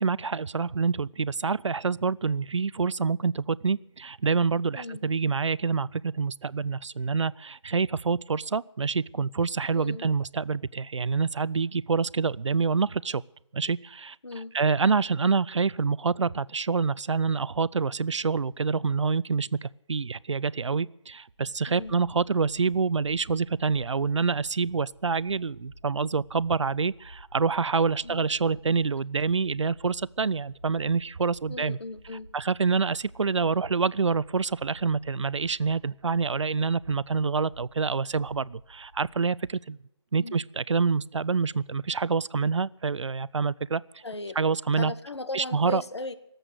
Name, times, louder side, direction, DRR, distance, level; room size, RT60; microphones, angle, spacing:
voice 1, 0.0-13.2 13.5-14.2 14.5-31.8 32.3-39.8 40.1-44.0 44.4-44.9 45.3-45.8, right 5 dB, 80° right, 21 dB, 0.5 m, -27 dB
voice 2, 9.7-10.0 14.2-14.5 21.7-22.0 28.0-28.3 31.5-32.3 40.2-40.4 44.0-44.4 44.8-46.1, left 2 dB, 65° left, 11 dB, 1.4 m, -37 dB
sound 1, 21.3-39.2, right 1 dB, 10° left, 6.4 m, -52 dB
19.0 x 7.9 x 8.1 m, 0.83 s
figure-of-eight pair, 175°, 15 cm